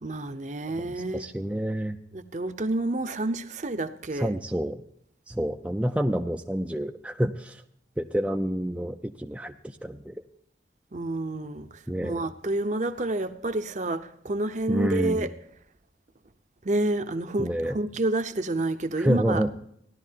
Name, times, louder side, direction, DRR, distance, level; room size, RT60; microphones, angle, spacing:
voice 1, 0.0-1.3 2.1-4.3 10.9-15.3 16.6-19.4, right 2 dB, 40° right, 0.7 m, -29 dB
voice 2, 0.8-2.0 4.1-4.8 5.3-7.6 8.0-10.2 11.9-12.3 14.7-15.3 17.4-17.8 19.0-19.5, equal, 5° right, 0.4 m, -28 dB
16.0 x 11.5 x 2.8 m
head